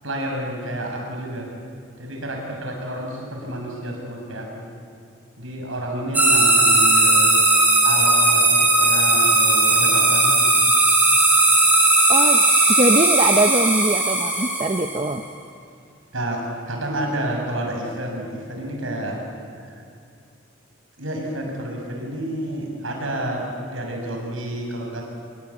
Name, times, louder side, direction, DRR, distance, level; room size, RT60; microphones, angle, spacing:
voice 1, 0.0-1.5 2.0-4.7 5.4-7.4 7.8-10.7 16.1-19.2 19.6-19.8 21.0-25.0, right 1 dB, 85° right, 1 dB, 7.1 m, -30 dB
sound 1, 6.1-15.1, right 2 dB, 10° right, 4.5 m, -17 dB
voice 2, 12.1-12.4 12.7-15.2, right 2 dB, 25° right, 7 dB, 0.8 m, -21 dB
26.5 x 22.5 x 8.7 m, 2.4 s
head